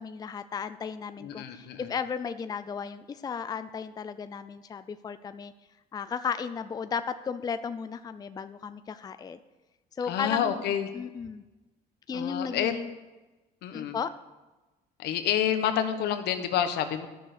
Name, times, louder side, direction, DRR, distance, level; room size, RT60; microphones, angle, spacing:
voice 1, 0.0-5.5 5.9-9.4 10.0-10.6 10.9-11.4 12.1-12.9 13.7-14.1, left 6 dB, 25° left, 11 dB, 0.4 m, -34 dB
voice 2, 1.2-1.9 10.1-10.9 12.1-12.7 13.6-14.0 15.0-17.1, left 9 dB, 80° left, 8 dB, 1.1 m, -28 dB
11.5 x 6.4 x 6.5 m, 1.1 s
cardioid pair, 110°, 17 cm